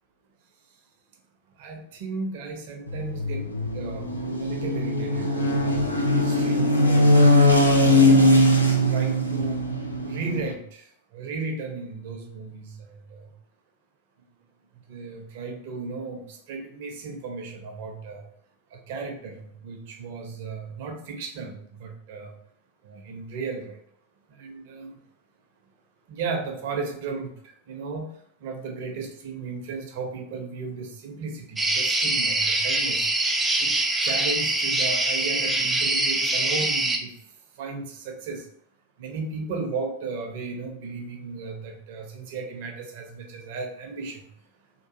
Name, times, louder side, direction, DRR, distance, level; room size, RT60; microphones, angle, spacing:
voice 1, 1.6-3.5 3.7-7.2 7.7-8.2 8.7-9.6 10.0-13.3 14.7-18.2 18.7-22.4 22.8-23.8 24.3-24.9 26.1-28.1 28.4-33.1 33.6-33.8 34.0-37.1 37.5-38.5 39.0-44.3, right 4 dB, 50° right, 3 dB, 0.6 m, -35 dB
sound 1, 2.9-10.5, left 1 dB, 85° left, 0.4 m, -20 dB
sound 2, 31.6-37.0, right 2 dB, 10° right, 0.4 m, -24 dB
2.9 x 2.3 x 2.7 m, 0.71 s
figure-of-eight pair, 90°, 0 cm